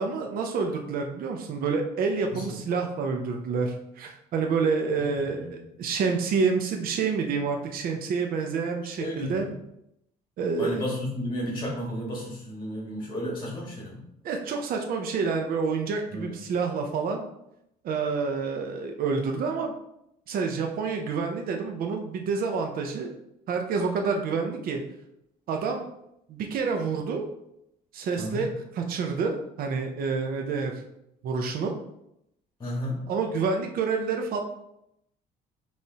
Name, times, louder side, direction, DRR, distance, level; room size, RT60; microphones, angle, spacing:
voice 1, 0.0-9.5 10.4-10.8 14.2-17.2 17.8-19.7 20.3-23.1 23.5-24.8 25.5-25.9 26.3-27.3 27.9-28.5 28.8-30.7 31.2-31.8 33.1-34.4, right 5 dB, 60° right, 3 dB, 0.7 m, -28 dB
voice 2, 5.0-5.6 9.0-9.5 10.6-14.0 16.1-16.4 28.2-28.5 32.6-33.0, equal, 25° left, -3 dB, 1.7 m, -33 dB
5.4 x 3.2 x 2.9 m, 0.79 s
cardioid pair, 110°, 17 cm